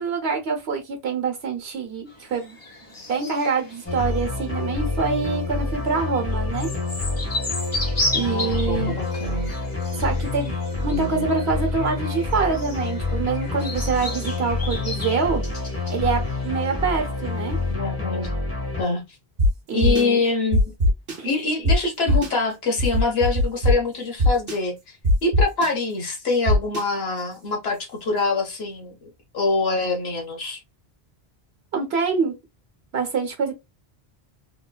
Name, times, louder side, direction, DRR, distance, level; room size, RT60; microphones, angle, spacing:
voice 1, 0.0-2.6 3.1-6.7 8.1-8.9 10.0-15.4 15.9-17.6 19.7-20.2 21.2-21.3 31.7-32.4 32.9-33.5, right 5 dB, 90° right, 1.2 m, -25 dB
sound 1, 2.1-17.7, left 2 dB, 40° left, 1.3 m, -35 dB
sound 2, 3.9-18.8, left 3 dB, 15° left, 1.4 m, -27 dB
voice 2, 8.1-9.5 10.9-11.3 17.7-18.3 18.8-19.0 19.7-20.7 21.2-30.6, left 3 dB, 75° left, 1.3 m, -25 dB
sound 3, 19.4-19.5 19.8-20.0 20.5-21.1 21.6-21.7 22.1-22.3 22.8-23.7 24.2-24.5 25.0-25.7 26.5-26.8, left 1 dB, 65° right, 1.2 m, -18 dB
3.7 x 2.5 x 2.2 m
omnidirectional pair, 1.0 m